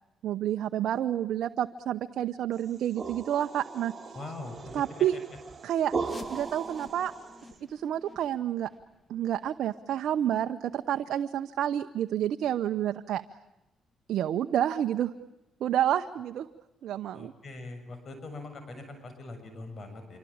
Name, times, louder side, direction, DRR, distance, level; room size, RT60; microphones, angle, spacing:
voice 1, 0.2-3.9 4.7-5.2 5.6-5.9 6.3-7.1 7.7-8.7 9.1-13.2 14.1-15.1 15.6-16.5 16.8-17.3, right 11 dB, 75° right, 8 dB, 0.9 m, -29 dB
sound 1, 2.6-7.6, right 4 dB, 35° right, 3.2 m, -38 dB
voice 2, 4.1-4.8 5.1-5.2 17.1-20.2, left 2 dB, 45° left, 7 dB, 7.3 m, -42 dB
sound 2, 6.0-11.6 11.9-12.0 12.6-12.7 13.3-13.4 13.9-14.0, left 3 dB, 30° left, 2.6 m, -52 dB
26.5 x 24.5 x 8.7 m, 0.97 s
cardioid pair, 90°, 0 cm